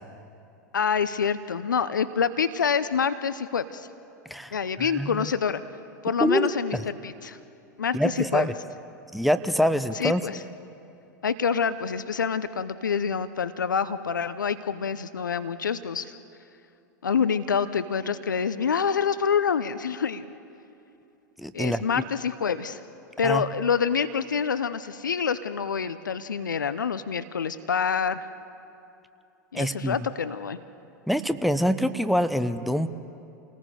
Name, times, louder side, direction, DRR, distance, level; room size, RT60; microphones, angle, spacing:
voice 1, 0.7-3.9 4.5-5.6 6.0-6.8 7.0-7.4 7.8-8.5 9.9-10.4 11.2-16.1 17.0-20.3 21.5-22.8 23.2-28.3 29.5-30.6, left 6 dB, 80° left, 14 dB, 0.7 m, -26 dB
voice 2, 4.3-5.3 6.2-6.8 7.9-8.5 9.1-10.2 21.4-21.8 23.2-23.4 29.5-30.0 31.1-32.9, equal, ahead, 11 dB, 0.8 m, -25 dB
29.5 x 18.5 x 5.0 m, 2.7 s
figure-of-eight pair, 95°, 10 cm